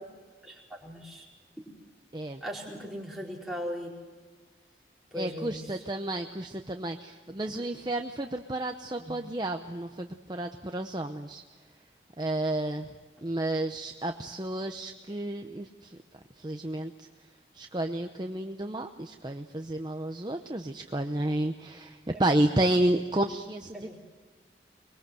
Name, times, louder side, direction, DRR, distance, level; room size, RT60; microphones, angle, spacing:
voice 1, 0.4-1.3 2.4-3.9 5.1-5.8 9.0-9.2 13.2-13.3 22.1-22.2 23.7-24.0, equal, ahead, -4 dB, 4.8 m, -38 dB
voice 2, 5.2-11.4 12.2-12.9 13.2-16.0 16.4-17.1 17.5-24.0, right 1 dB, 25° right, 5 dB, 0.8 m, -31 dB
24.5 x 21.5 x 7.8 m, 1.4 s
head